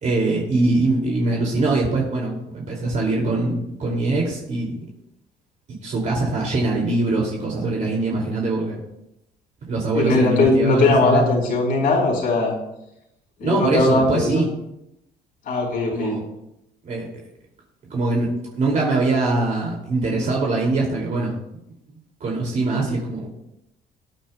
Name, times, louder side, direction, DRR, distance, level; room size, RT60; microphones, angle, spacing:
voice 1, 0.0-4.8 5.8-8.8 9.7-11.2 13.4-14.5 15.9-16.2 16.8-17.1 17.9-21.3 22.2-23.3, right 2 dB, 45° right, -2 dB, 2.6 m, -22 dB
voice 2, 9.9-12.5 13.4-14.4 15.5-16.2, left 2 dB, 60° left, 0 dB, 4.4 m, -19 dB
19.0 x 9.2 x 2.3 m, 0.83 s
cardioid pair, 110°, 17 cm